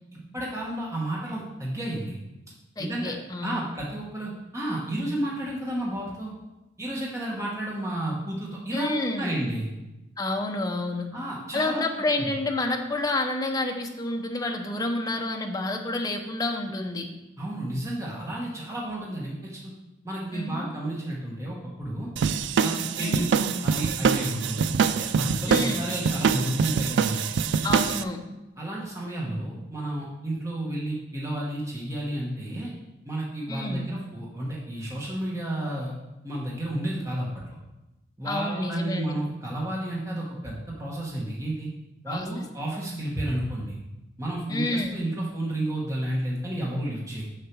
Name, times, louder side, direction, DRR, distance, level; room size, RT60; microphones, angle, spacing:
voice 1, 0.1-2.2 2.8-3.1 3.4-6.3 6.8-9.7 11.1-11.9 12.2-12.3 17.4-19.7 20.0-22.1 22.6-27.3 28.6-32.7 33.0-35.9 36.2-37.6 38.2-41.7 42.0-43.8 44.2-47.2, right 1 dB, 15° right, -4 dB, 1.2 m, -31 dB
voice 2, 2.8-3.6 8.7-9.4 10.2-11.1 11.5-17.1 20.3-20.7 23.0-23.2 25.5-25.9 27.6-28.2 33.5-33.9 38.2-39.1 42.1-42.5 42.9-43.1 44.5-45.0, left 2 dB, 20° left, 2 dB, 0.8 m, -29 dB
sound 1, 22.2-28.0, right 6 dB, 75° right, 0.4 m, -25 dB
6.7 x 6.6 x 4.6 m, 1.0 s
head